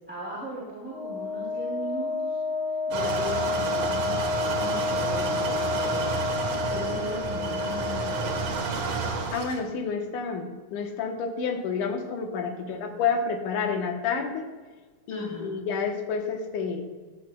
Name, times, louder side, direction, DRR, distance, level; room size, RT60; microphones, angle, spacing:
voice 1, 0.1-2.4 2.9-9.1 12.6-12.9 15.1-15.5, right 1 dB, 5° right, -8 dB, 2.4 m, -39 dB
Wind instrument woodwind instrument, 0.8-8.7, left 4 dB, 40° right, 3.9 m, -30 dB
sound 1, 2.9-9.6, right 4 dB, 65° right, 2.3 m, -30 dB
voice 2, 9.3-14.5 15.1-16.8, left 5 dB, 85° left, 4 dB, 2.6 m, -29 dB
15.0 x 10.5 x 2.2 m, 1.4 s
omnidirectional pair, 3.5 m